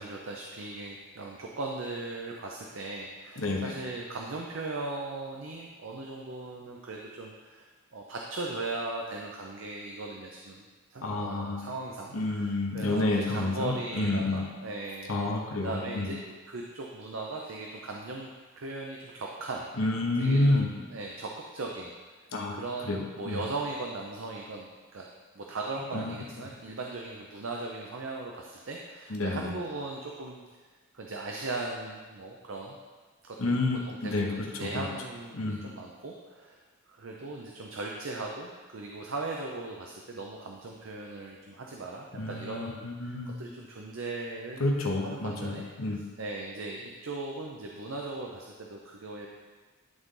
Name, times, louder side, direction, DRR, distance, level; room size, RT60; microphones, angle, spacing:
voice 1, 0.0-15.1 15.6-18.3 18.6-19.7 20.2-21.9 22.5-24.7 24.9-25.1 25.4-30.4 30.9-32.8 33.3-33.4 33.9-36.6 36.9-44.6 45.0-45.7 46.2-49.3, right 2 dB, 65° right, 0 dB, 0.6 m, -38 dB
voice 2, 3.4-3.8 11.0-11.7 12.1-14.5 15.1-16.1 19.8-20.8 22.3-23.4 25.9-26.1 29.1-29.5 33.4-34.9 35.3-35.6 42.1-43.3 44.6-46.0, left 2 dB, 75° left, 0 dB, 1.1 m, -29 dB
11.0 x 4.0 x 3.8 m, 1.4 s
head